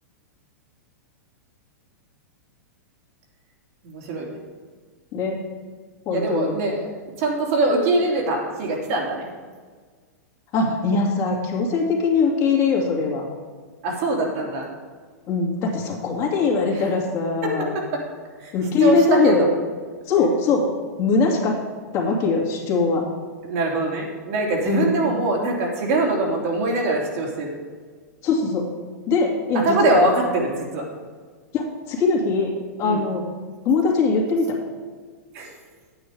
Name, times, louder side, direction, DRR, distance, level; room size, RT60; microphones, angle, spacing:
voice 1, 3.8-4.4 6.1-6.9 7.2-9.3 13.8-14.7 16.7-16.9 17.4-18.1 18.4-18.5 18.8-19.5 23.4-27.6 29.5-30.9 32.8-33.1 35.3-35.5, right 2 dB, 55° right, -2 dB, 3.1 m, -23 dB
voice 2, 6.1-6.5 10.5-13.2 15.3-17.7 18.5-19.5 20.1-20.7 21.0-21.6 21.9-23.0 24.7-24.9 28.2-28.7 29.1-30.0 31.5-32.5 32.8-33.2 33.6-34.6, left 4 dB, 40° left, -1 dB, 2.6 m, -21 dB
9.4 x 9.0 x 4.9 m, 1.5 s
hypercardioid pair, 115°, 9 cm